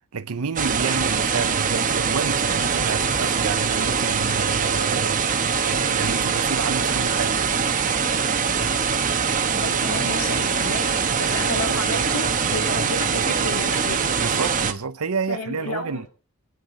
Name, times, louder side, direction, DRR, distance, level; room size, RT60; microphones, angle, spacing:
voice 1, 0.1-7.4 9.9-10.2 14.2-16.1, right 5 dB, 80° right, 0.7 m, -30 dB
sound 1, 0.6-14.7, right 6 dB, 35° right, 1.1 m, -23 dB
voice 2, 9.6-10.9 11.2-14.1 15.3-16.0, left 1 dB, 80° left, 3.1 m, -31 dB
25.0 x 9.4 x 3.9 m
head